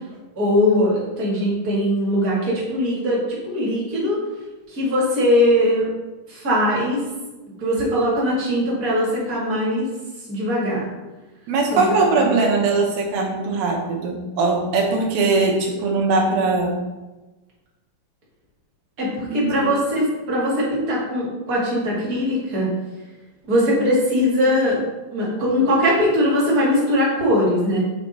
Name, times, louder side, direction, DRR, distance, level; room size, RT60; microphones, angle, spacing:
voice 1, 0.3-4.2 4.7-5.9 6.3-7.0 7.6-9.9 10.3-10.8 11.7-11.8 12.2-12.3 19.0-22.7 23.5-24.8 25.1-27.8, left 1 dB, 40° right, -5 dB, 1.3 m, -20 dB
voice 2, 11.5-16.8 19.3-19.7, right 3 dB, 75° right, 0 dB, 2.7 m, -20 dB
8.3 x 3.3 x 4.1 m, 1.1 s
omnidirectional pair, 4.4 m